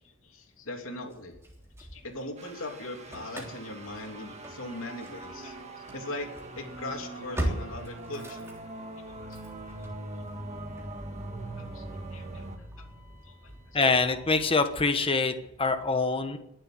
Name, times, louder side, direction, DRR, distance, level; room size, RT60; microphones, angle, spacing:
voice 1, 0.0-1.3 1.8-5.6 5.9-6.3 6.6-8.5 9.1-9.3 11.7-11.8 12.1-12.4 12.8-12.9 13.2-13.3, left 2 dB, 85° left, 2 dB, 3.0 m, -40 dB
Engine starting / Slam, 1.1-2.5 2.8-15.8, right 1 dB, 15° right, 3.4 m, -41 dB
sound 1, 2.4-12.6, right 1 dB, 35° right, 1.8 m, -42 dB
voice 2, 13.7-16.4, left 3 dB, 25° left, 9 dB, 1.2 m, -25 dB
22.0 x 7.8 x 7.8 m, 0.88 s
head